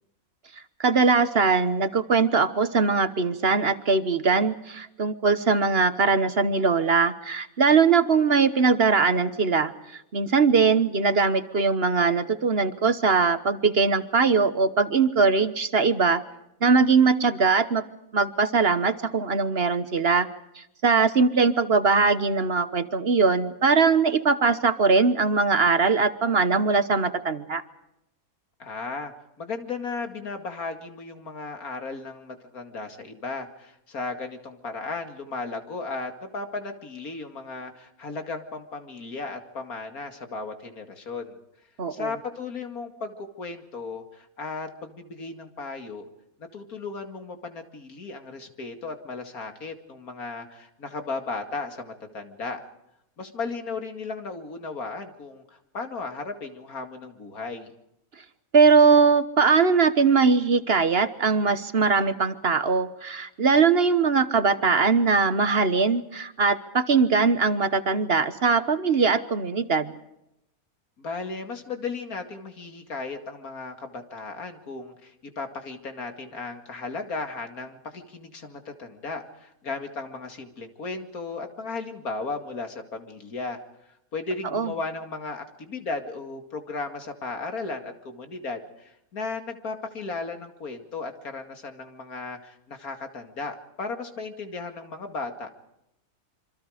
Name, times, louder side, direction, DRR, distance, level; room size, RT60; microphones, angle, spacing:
voice 1, 0.8-16.2 16.6-17.8 18.1-20.3 20.6-27.6 41.8-42.1 58.5-69.9 84.5-84.7, right 4 dB, 45° right, 12 dB, 1.2 m, -21 dB
voice 2, 28.6-41.4 41.9-46.1 46.4-52.6 53.2-57.7 71.0-83.6 84.1-95.5, left 3 dB, 90° left, 6 dB, 2.8 m, -35 dB
27.0 x 25.0 x 5.1 m, 0.84 s
omnidirectional pair, 1.5 m